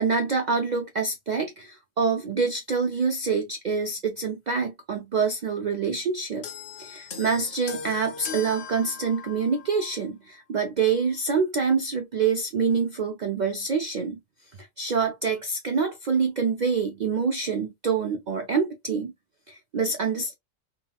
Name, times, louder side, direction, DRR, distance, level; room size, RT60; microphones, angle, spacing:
voice 1, 0.0-6.5 6.8-14.2 14.5-19.1 19.5-20.3, right 5 dB, 75° right, 0.4 m, -26 dB
sound 1, 6.4-10.0 10.9-11.1, left 6 dB, 50° left, 0.7 m, -39 dB
3.8 x 2.2 x 2.3 m
omnidirectional pair, 1.3 m